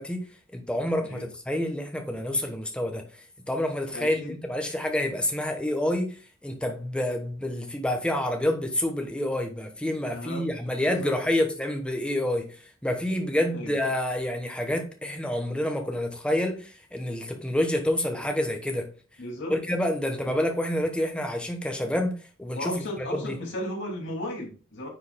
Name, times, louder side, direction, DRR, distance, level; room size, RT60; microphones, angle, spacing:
voice 1, 0.0-3.0 3.5-18.9 19.5-23.4, left 1 dB, 5° left, 1.1 m, -28 dB
voice 2, 3.9-4.3 10.1-10.5 11.0-11.2 13.5-13.7 19.2-19.6 20.2-20.4 22.5-24.9, left 1 dB, 60° left, 2.5 m, -35 dB
9.9 x 4.7 x 2.2 m
head